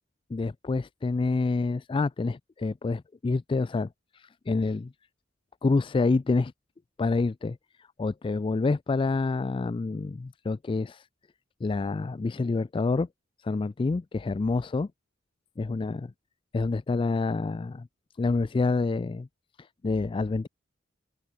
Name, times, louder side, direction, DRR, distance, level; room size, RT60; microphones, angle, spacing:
voice 1, 0.3-4.9 5.6-6.5 7.0-7.6 8.0-11.1 11.6-13.1 13.4-14.9 15.6-16.1 16.5-17.9 18.2-19.3 19.6-20.5, left 3 dB, 25° left, 0.3 m, -27 dB
open air
head